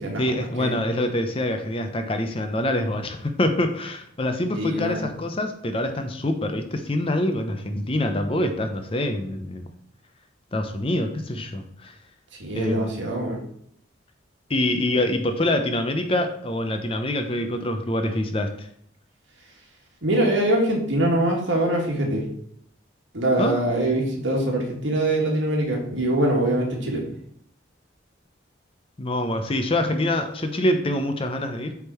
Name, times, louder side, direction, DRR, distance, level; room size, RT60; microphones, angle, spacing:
voice 1, 0.2-9.6 10.5-12.0 12.5-12.9 14.5-18.7 23.4-23.5 29.0-31.8, left 1 dB, 30° left, 6 dB, 0.6 m, -25 dB
voice 2, 4.5-5.1 12.4-13.4 20.0-22.2 23.1-27.0, right 1 dB, 70° right, -1 dB, 1.9 m, -23 dB
8.0 x 3.6 x 4.4 m, 0.66 s
head